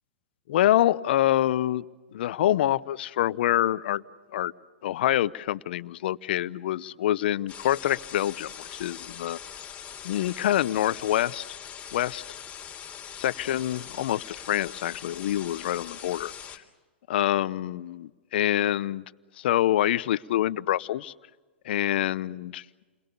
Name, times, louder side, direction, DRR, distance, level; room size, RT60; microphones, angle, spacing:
voice 1, 0.5-1.8 2.1-4.0 4.3-4.5 4.8-9.4 10.0-11.6 11.9-12.2 13.1-16.3 17.1-19.0 19.4-21.1 21.6-22.6, left 13 dB, 65° left, 17 dB, 0.8 m, -26 dB
sound 1, 7.5-16.6, left 8 dB, 20° left, 3.6 m, -42 dB
29.5 x 22.0 x 7.0 m, 1.3 s
hypercardioid pair, 110°, 6 cm